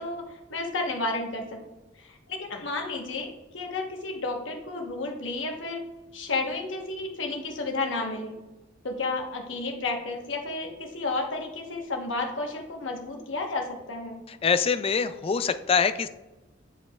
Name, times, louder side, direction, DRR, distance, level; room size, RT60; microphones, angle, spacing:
voice 1, 0.0-1.6 2.0-5.8 6.1-8.4 8.8-14.2, left 3 dB, 70° left, 2 dB, 1.1 m, -32 dB
voice 2, 14.3-16.1, left 6 dB, 30° left, 12 dB, 0.3 m, -24 dB
9.7 x 5.0 x 2.3 m, 1.1 s
head